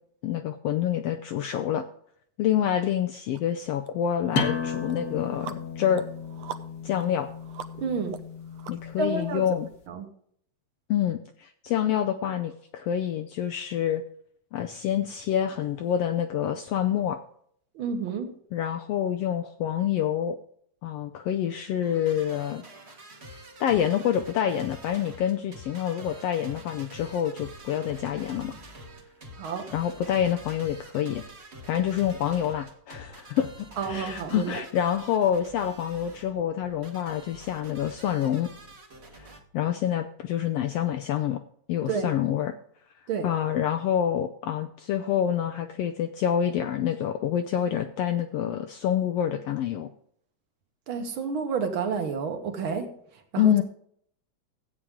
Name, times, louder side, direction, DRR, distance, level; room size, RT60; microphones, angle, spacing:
voice 1, 0.2-1.8 2.4-6.0 6.8-7.3 8.7-9.7 10.9-14.0 14.5-17.2 18.5-20.4 20.8-22.6 23.6-28.5 29.7-31.2 31.7-38.5 39.2-41.4 41.7-42.5 43.2-49.9 53.4-53.6, left 10 dB, 75° left, 6 dB, 1.4 m, -27 dB
sound 1, 3.3-3.4 3.9-9.2, right 9 dB, 70° right, 1.6 m, -43 dB
sound 2, 4.3-9.7, left 5 dB, 45° left, 1.3 m, -34 dB
voice 2, 7.8-8.2 9.0-9.5 9.9-10.1 17.7-18.3 29.4-29.7 33.8-34.6 41.9-42.1 43.1-43.3 50.9-52.9 53.3-53.6, right 5 dB, 55° right, 5 dB, 1.8 m, -30 dB
sound 3, 21.7-39.4, right 1 dB, 30° right, 1.2 m, -47 dB
13.5 x 8.6 x 3.7 m, 0.65 s
omnidirectional pair, 3.3 m